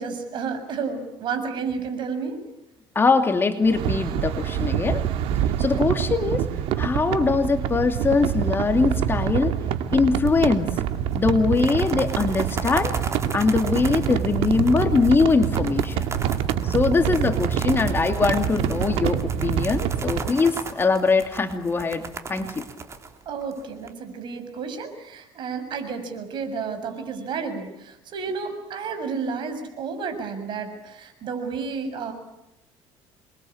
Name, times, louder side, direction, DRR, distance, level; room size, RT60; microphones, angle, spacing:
voice 1, 0.0-2.4 16.9-17.0 23.3-32.1, right 5 dB, 55° right, 7 dB, 7.0 m, -31 dB
voice 2, 2.9-5.0 5.6-6.5 6.8-9.5 9.9-10.7 11.1-12.9 13.3-16.0 16.6-22.0 22.3-22.6, left 4 dB, 25° left, 7 dB, 2.6 m, -22 dB
sound 1, 3.6-20.3, right 9 dB, 80° right, 2.1 m, -26 dB
sound 2, 10.3-10.7 11.0-11.1 11.4-23.9, right 4 dB, 30° right, 3.7 m, -36 dB
28.5 x 22.5 x 8.7 m, 0.90 s
cardioid pair, 125°, 10 cm